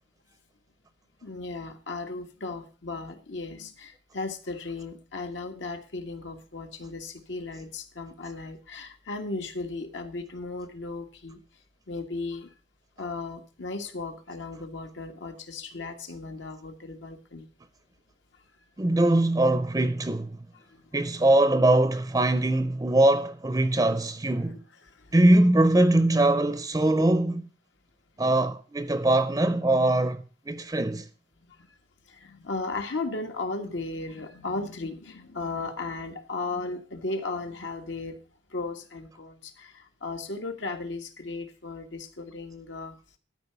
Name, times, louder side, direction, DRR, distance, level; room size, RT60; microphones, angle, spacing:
voice 1, 1.2-11.4 11.9-12.5 13.0-17.5 20.6-20.9 24.4-25.2 31.5-31.8 32.1-38.2 38.5-43.0, left 3 dB, 80° left, 1.6 m, -36 dB
voice 2, 18.8-20.3 20.9-24.6 25.1-27.4 28.2-31.1, right 1 dB, 20° right, 0.5 m, -22 dB
12.5 x 4.9 x 6.7 m
head